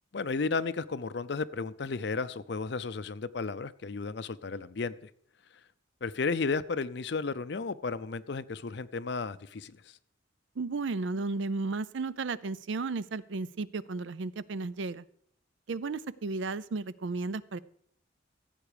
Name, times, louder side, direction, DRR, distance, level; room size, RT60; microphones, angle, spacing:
voice 1, 0.1-5.1 6.0-9.8, left 4 dB, 55° left, 16 dB, 0.5 m, -33 dB
voice 2, 10.6-15.0 15.7-17.6, right 3 dB, 70° right, 17 dB, 0.5 m, -34 dB
15.0 x 8.2 x 5.0 m, 0.65 s
head